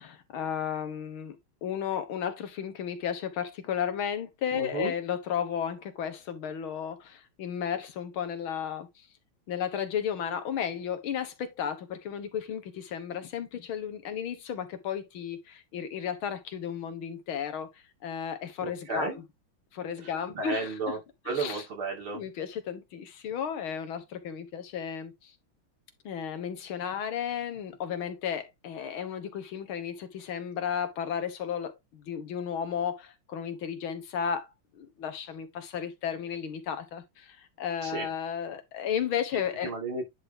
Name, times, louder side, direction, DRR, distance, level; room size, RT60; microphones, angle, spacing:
voice 1, 0.0-1.4 1.6-9.1 9.5-19.2 19.7-20.8 21.3-21.6 22.1-25.3 26.0-34.5 34.7-39.7, left 8 dB, 80° left, 2.1 m, -34 dB
voice 2, 4.5-4.9 18.6-19.2 20.0-21.0 21.3-22.2 37.8-38.1 39.6-40.1, right 3 dB, 85° right, 3.5 m, -33 dB
10.0 x 3.7 x 3.7 m
omnidirectional pair, 2.2 m